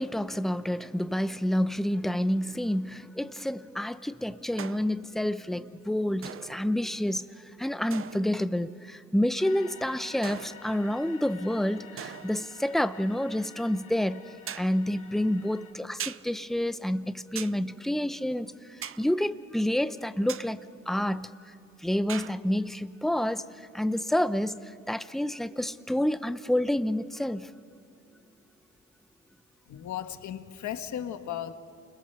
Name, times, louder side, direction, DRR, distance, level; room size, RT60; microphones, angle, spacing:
voice 1, 0.0-7.3 7.6-14.2 14.6-18.5 19.0-21.5 21.8-23.5 23.7-27.5, left 1 dB, ahead, 0.7 m, -29 dB
sound 1, 4.6-5.1 6.2-6.8 7.9-8.5 10.2-10.9 12.0-12.5 14.5-14.8 16.0-16.3 17.3-17.6 18.8-19.1 20.3-20.5 22.1-22.4, right 9 dB, 45° right, 0.6 m, -40 dB
sound 2, 9.4-15.7, left 6 dB, 90° left, 4.7 m, -50 dB
voice 2, 29.7-31.5, left 10 dB, 70° left, 1.6 m, -36 dB
29.5 x 22.0 x 6.9 m
cardioid pair, 90°, 30 cm